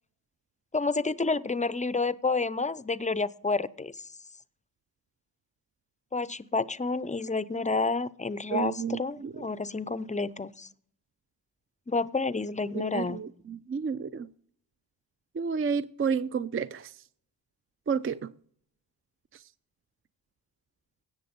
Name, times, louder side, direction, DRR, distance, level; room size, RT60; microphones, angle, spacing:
voice 1, 0.7-3.9 6.1-10.7 11.9-13.2, left 3 dB, 15° left, 0.5 m, -29 dB
voice 2, 8.5-9.3 12.7-14.3 15.4-16.9 17.9-18.2, right 6 dB, 30° right, 0.5 m, -31 dB
17.0 x 6.6 x 5.2 m
cardioid pair, 50°, 45 cm